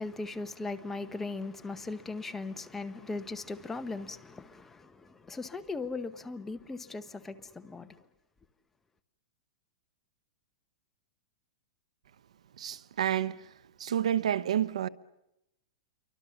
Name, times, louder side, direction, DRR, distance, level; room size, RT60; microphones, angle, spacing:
voice 1, 0.0-7.9, left 3 dB, 10° left, 0.9 m, -38 dB
voice 2, 12.6-13.5 13.8-14.9, right 10 dB, 85° right, 0.9 m, -29 dB
27.5 x 24.0 x 7.0 m
supercardioid pair, 150°, 3 cm